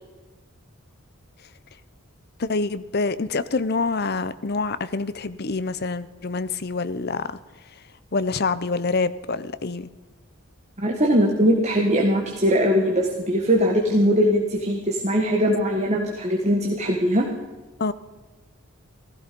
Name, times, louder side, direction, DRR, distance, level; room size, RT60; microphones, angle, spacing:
voice 1, 2.4-7.3 8.1-9.9 17.8-17.9, left 3 dB, 50° left, 14 dB, 0.8 m, -26 dB
voice 2, 10.8-17.3, equal, 30° right, 1 dB, 1.8 m, -21 dB
16.0 x 15.5 x 5.3 m, 1.2 s
head